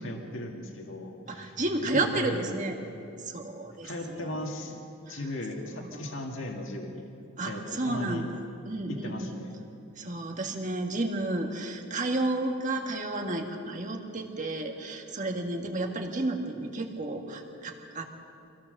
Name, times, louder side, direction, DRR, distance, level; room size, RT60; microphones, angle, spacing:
voice 1, 0.0-2.6 3.8-4.8 5.1-7.0 7.4-8.2 8.9-9.5, left 1 dB, 60° left, 1 dB, 2.0 m, -37 dB
voice 2, 1.3-2.8 3.2-4.6 5.1-5.2 5.7-6.2 7.4-9.4 10.0-18.0, right 2 dB, 35° right, 2 dB, 1.7 m, -32 dB
25.0 x 16.5 x 6.6 m, 2.7 s
head